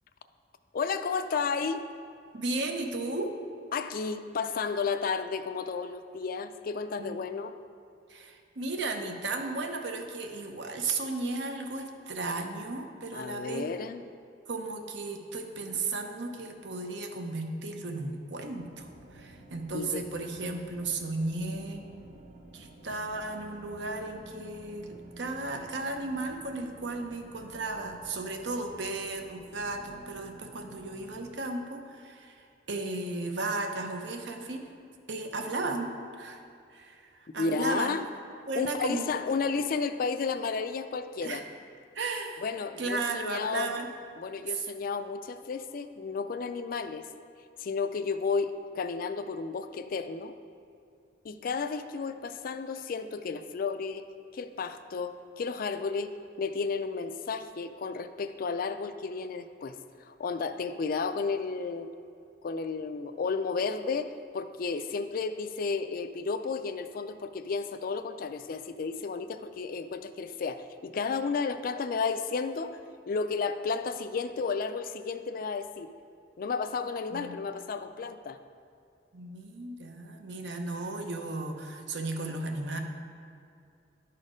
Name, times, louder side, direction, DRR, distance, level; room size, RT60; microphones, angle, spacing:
voice 1, 0.7-1.8 3.7-7.5 13.1-14.0 19.7-20.0 37.4-38.0 38.6-41.4 42.4-43.8 44.2-47.1 47.6-50.3 51.2-54.1 54.3-56.1 56.4-61.9 62.4-72.8 73.1-75.9 76.4-78.4, left 4 dB, 50° left, 10 dB, 0.4 m, -32 dB
voice 2, 2.3-3.3 7.0-7.2 8.1-13.7 14.5-21.8 22.5-34.6 35.1-36.4 36.7-38.0 38.5-39.2 41.2-41.4 41.9-42.4 42.8-43.9 77.1-77.3 79.1-82.8, right 2 dB, 75° right, 4 dB, 0.8 m, -35 dB
sound 1, 18.6-31.4, right 1 dB, 45° right, 0.8 m, -52 dB
11.0 x 4.3 x 5.0 m, 2.5 s
head